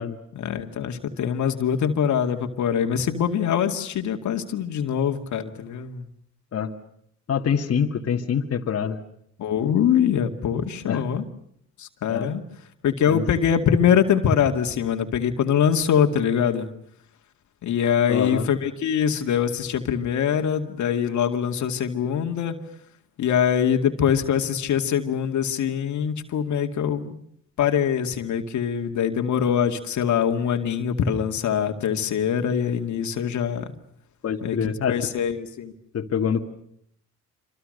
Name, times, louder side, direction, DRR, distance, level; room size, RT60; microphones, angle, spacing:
voice 1, 0.3-6.1 9.4-11.2 11.8-12.4 12.8-16.7 17.6-22.6 23.2-27.2 27.6-33.7 34.4-35.7, left 8 dB, 70° left, 6 dB, 2.3 m, -23 dB
voice 2, 7.3-9.0 10.8-11.0 12.1-12.3 13.1-13.2 18.1-18.5 34.2-35.0 35.9-36.4, left 7 dB, 50° left, 3 dB, 2.1 m, -25 dB
26.5 x 26.0 x 6.6 m, 0.69 s
cardioid pair, 90°, 30 cm